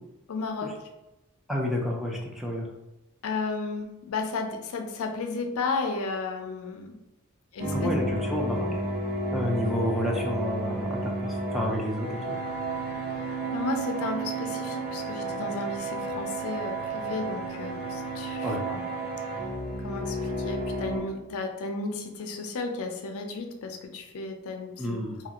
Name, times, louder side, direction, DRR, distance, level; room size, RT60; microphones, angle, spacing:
voice 1, 0.3-0.7 3.2-6.9 7.5-7.9 13.5-18.8 19.8-25.0, left 4 dB, 70° left, 4 dB, 0.4 m, -33 dB
voice 2, 1.5-2.7 7.7-8.7 9.3-12.4 18.4-18.6 24.8-25.2, left 1 dB, ahead, -2 dB, 0.4 m, -30 dB
sound 1, 7.6-21.0, right 2 dB, 45° right, 0.8 m, -32 dB
2.8 x 2.4 x 2.8 m, 0.96 s
head